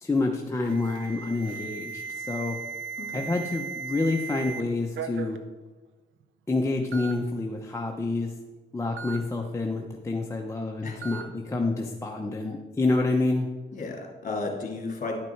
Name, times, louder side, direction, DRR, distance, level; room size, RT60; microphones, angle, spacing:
voice 1, 0.0-2.6 3.1-5.4 6.5-8.3 8.7-13.5, left 3 dB, 15° left, 1 dB, 0.8 m, -28 dB
Alarm, 0.6-4.6 4.9-5.4 6.2-6.3 6.9-7.1 9.0-9.2 11.0-11.2, right 6 dB, 75° right, 0.8 m, -37 dB
voice 2, 3.0-3.3 10.8-11.0 13.7-15.2, left 3 dB, 40° left, 0 dB, 2.7 m, -33 dB
11.0 x 5.9 x 4.6 m, 1.2 s
cardioid pair, 90°, 20 cm